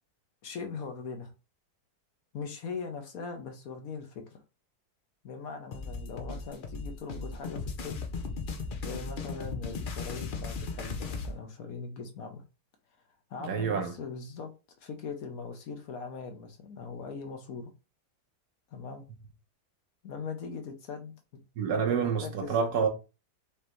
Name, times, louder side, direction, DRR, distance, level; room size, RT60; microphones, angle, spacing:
voice 1, 0.4-1.3 2.3-4.4 5.2-8.0 8.8-12.4 13.3-14.5 14.8-17.7 18.7-19.0 20.0-21.1 21.7-22.5, left 5 dB, 60° left, 1.1 m, -40 dB
sound 1, 5.7-11.3, left 4 dB, 80° left, 0.4 m, -37 dB
voice 2, 13.4-13.9 21.6-22.9, right 6 dB, 70° right, 1.4 m, -28 dB
5.0 x 3.3 x 3.0 m
omnidirectional pair, 1.8 m